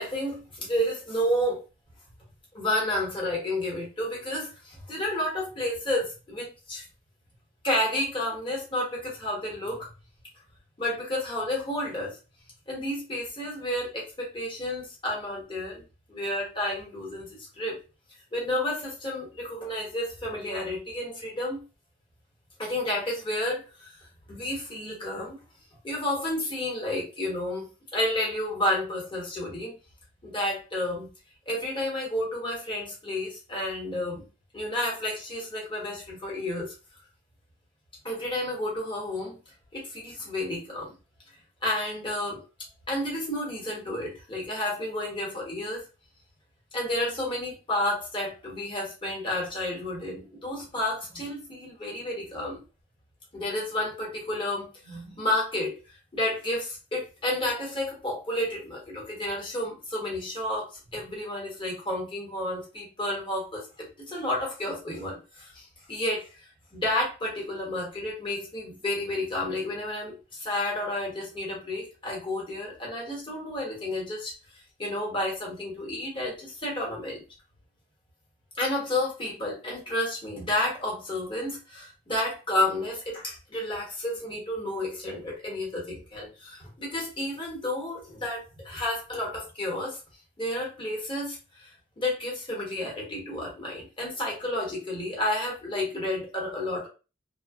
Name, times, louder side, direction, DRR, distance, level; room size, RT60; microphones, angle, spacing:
voice 1, 0.0-1.6 2.5-6.8 7.6-9.9 10.8-12.2 12.7-15.8 16.1-17.8 18.3-21.6 22.6-24.0 24.3-25.4 25.8-29.8 30.2-31.1 31.5-34.2 34.5-36.7 38.0-39.4 39.7-40.9 41.6-42.4 42.9-45.8 46.7-52.6 53.3-55.7 56.1-74.3 74.8-77.2 78.5-90.0 90.4-91.7 92.0-96.9, left 1 dB, 25° left, -3 dB, 1.1 m, -31 dB
2.6 x 2.2 x 2.4 m, 0.32 s
head